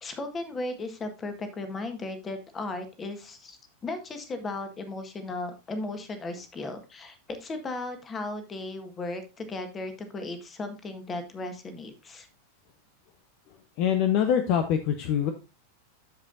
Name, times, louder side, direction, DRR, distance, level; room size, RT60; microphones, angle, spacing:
voice 1, 0.0-12.3, left 2 dB, 20° left, 8 dB, 1.6 m, -36 dB
voice 2, 13.8-15.3, left 8 dB, 45° left, 8 dB, 0.8 m, -24 dB
13.5 x 5.1 x 2.6 m, 0.27 s
figure-of-eight pair, 90°, 0 cm